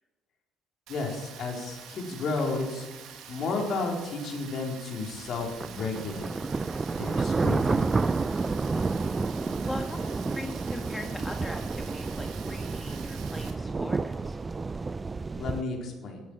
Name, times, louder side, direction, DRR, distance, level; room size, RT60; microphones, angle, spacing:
voice 1, 0.9-2.9 3.3-6.4 6.9-7.9 15.4-16.2, left 3 dB, 50° left, 1 dB, 3.9 m, -32 dB
Rain, 0.9-13.5, right 7 dB, 60° right, 2.2 m, -46 dB
sound 1, 5.3-15.6, right 4 dB, 25° right, 0.5 m, -30 dB
voice 2, 8.6-9.2 9.6-14.4, left 2 dB, 15° left, 3 dB, 1.6 m, -41 dB
16.0 x 13.0 x 4.5 m, 1.2 s
hypercardioid pair, 55°, 0 cm